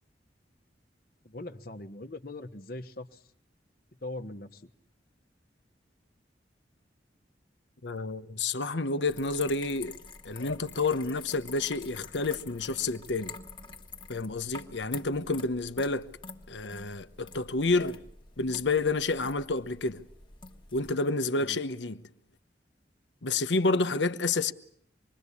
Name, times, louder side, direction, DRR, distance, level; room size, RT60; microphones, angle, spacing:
voice 1, 1.2-3.2 4.0-4.7 21.4-21.6, left 2 dB, 55° left, 1.3 m, -41 dB
voice 2, 7.8-9.9 10.2-13.4 14.1-16.1 16.5-18.0 18.4-20.1 20.7-22.0 23.2-24.5, left 3 dB, 90° left, 1.1 m, -29 dB
sound 1, 9.1-21.0, left 4 dB, 25° left, 1.5 m, -47 dB
26.5 x 22.0 x 8.4 m
head